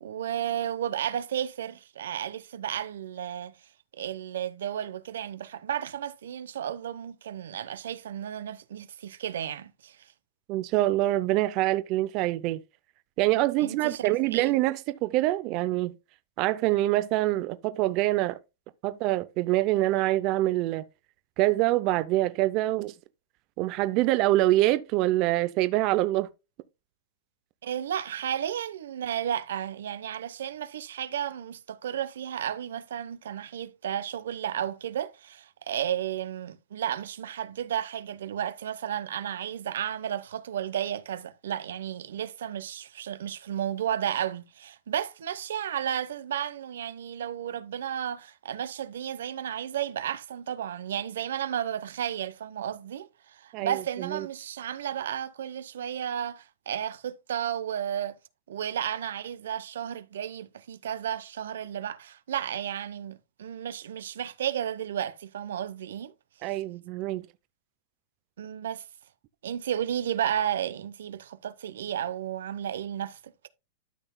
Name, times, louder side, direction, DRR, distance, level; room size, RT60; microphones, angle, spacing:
voice 1, 0.0-3.5 4.0-10.0 13.6-14.5 27.6-58.2 58.5-66.1 68.4-68.8 69.4-73.5, right 10 dB, 85° right, 0.8 m, -33 dB
voice 2, 10.5-12.6 13.2-15.9 16.4-18.4 18.8-20.9 21.4-22.9 23.6-26.3 53.5-54.3 66.4-67.2, right 16 dB, 40° right, 0.5 m, -25 dB
12.5 x 5.9 x 2.2 m
supercardioid pair, 155°, 0 cm